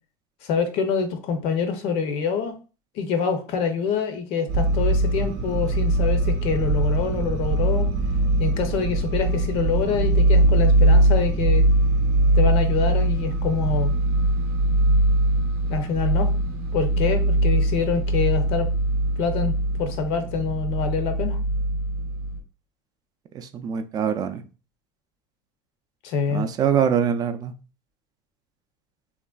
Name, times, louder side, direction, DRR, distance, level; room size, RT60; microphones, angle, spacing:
voice 1, 0.4-2.6 3.0-7.9 8.4-11.6 12.3-13.9 15.7-16.3 16.7-18.7 19.2-21.4 26.0-26.5, left 5 dB, 60° left, 8 dB, 0.5 m, -26 dB
sound 1, 4.5-22.4, right 1 dB, 75° right, 0.6 m, -21 dB
voice 2, 23.3-24.4 26.3-27.5, right 8 dB, 35° right, 8 dB, 0.3 m, -24 dB
3.0 x 2.5 x 2.2 m, 0.34 s
supercardioid pair, 115°, 12 cm